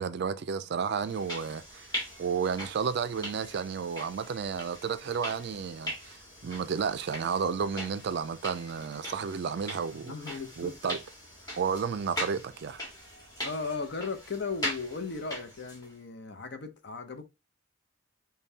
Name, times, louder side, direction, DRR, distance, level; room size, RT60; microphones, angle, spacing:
voice 1, 0.0-1.9 2.2-10.1 10.6-11.0 11.6-12.9, right 6 dB, 55° right, 0.4 m, -32 dB
sound 1, 1.0-15.9, left 1 dB, 20° left, 1.5 m, -41 dB
voice 2, 10.0-10.8 13.4-17.3, left 4 dB, 55° left, 0.7 m, -36 dB
5.3 x 2.2 x 2.7 m
head